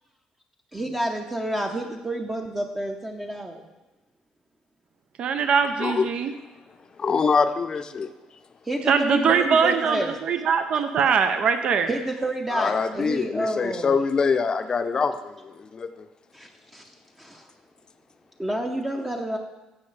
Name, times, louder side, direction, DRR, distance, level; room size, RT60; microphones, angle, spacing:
voice 1, 0.7-3.6 8.6-10.2 11.9-14.0 16.3-16.9 17.2-17.5 18.4-19.4, right 1 dB, 15° right, 2 dB, 0.7 m, -29 dB
voice 2, 5.2-6.3 8.9-11.9, right 6 dB, 55° right, 8 dB, 0.6 m, -22 dB
voice 3, 7.0-8.1 12.5-16.1, left 5 dB, 35° left, 9 dB, 0.6 m, -24 dB
15.5 x 5.5 x 3.3 m, 1.1 s
cardioid pair, 105°, 2 cm